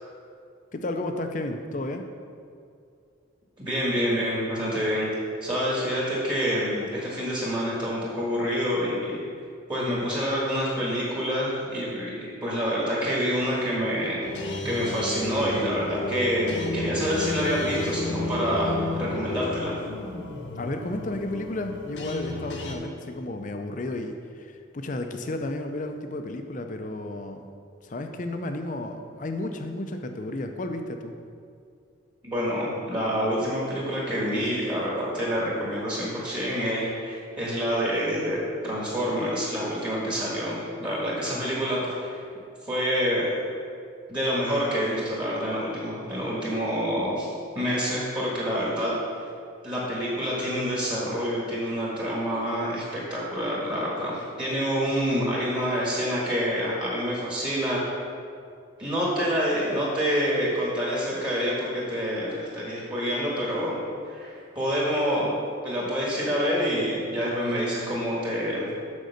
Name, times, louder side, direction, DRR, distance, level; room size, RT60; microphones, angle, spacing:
voice 1, 0.7-2.0 20.6-27.5 27.8-31.2 41.3-41.5, left 2 dB, 40° left, 6 dB, 0.5 m, -32 dB
voice 2, 3.6-5.1 5.4-9.2 9.7-14.2 14.6-19.8 32.2-42.2 42.6-43.4 44.1-48.9 49.6-57.8 58.8-63.8 64.1-65.4 65.6-68.7, equal, 25° right, -5 dB, 1.5 m, -27 dB
sound 1, 14.2-22.7, left 2 dB, 70° left, 1.2 m, -32 dB
6.5 x 5.3 x 6.6 m, 2.4 s
head